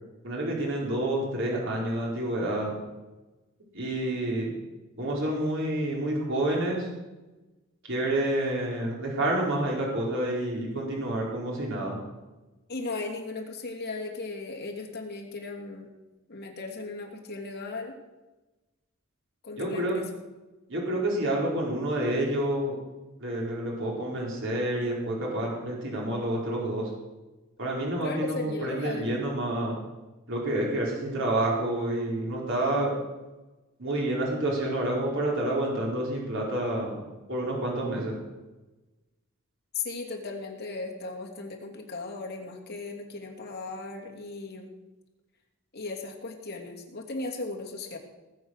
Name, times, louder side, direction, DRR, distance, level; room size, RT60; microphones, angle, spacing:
voice 1, 0.2-2.8 3.7-4.5 5.0-6.9 7.8-12.0 19.6-20.0 20.7-22.8 23.2-26.9 27.6-29.7 30.3-32.9 33.8-37.0 37.3-38.2, right 1 dB, 65° right, -3 dB, 4.4 m, -28 dB
voice 2, 12.7-15.9 16.3-18.0 19.4-20.0 28.0-29.2 39.7-44.7 45.7-48.0, left 3 dB, 50° left, 0 dB, 2.7 m, -36 dB
19.0 x 8.0 x 6.6 m, 1.1 s
head